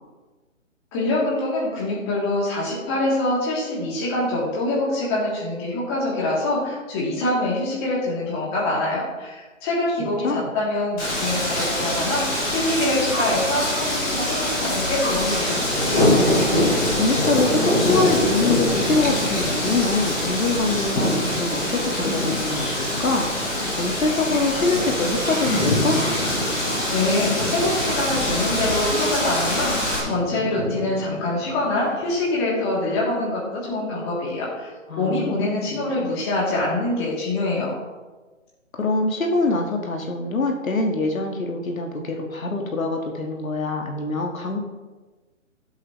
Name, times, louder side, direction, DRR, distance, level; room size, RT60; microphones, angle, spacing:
voice 1, 0.9-15.6 26.9-34.7 35.0-37.7, left 2 dB, 20° left, -5 dB, 2.9 m, -25 dB
voice 2, 10.0-10.5 16.9-23.3 23.8-26.0 34.9-35.8 38.8-44.6, left 3 dB, 80° left, 2 dB, 1.9 m, -24 dB
Wind, 11.0-30.0, left 1 dB, 5° left, 0.7 m, -26 dB
Thunder, 15.1-32.1, left 1 dB, 40° left, 3.9 m, -26 dB
15.5 x 8.0 x 3.2 m, 1.3 s
hypercardioid pair, 160°, 40 cm